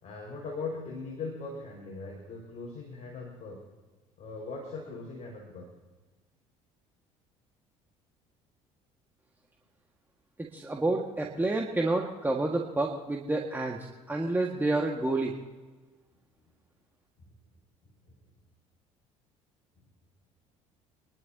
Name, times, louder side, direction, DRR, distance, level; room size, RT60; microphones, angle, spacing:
voice 1, 0.0-3.6 4.2-5.7, left 3 dB, 45° left, -1 dB, 5.4 m, -39 dB
voice 2, 10.4-13.8 14.1-15.3, right 2 dB, 10° right, 0 dB, 1.8 m, -29 dB
30.0 x 11.5 x 2.9 m, 1.3 s
hypercardioid pair, 60°, 16 cm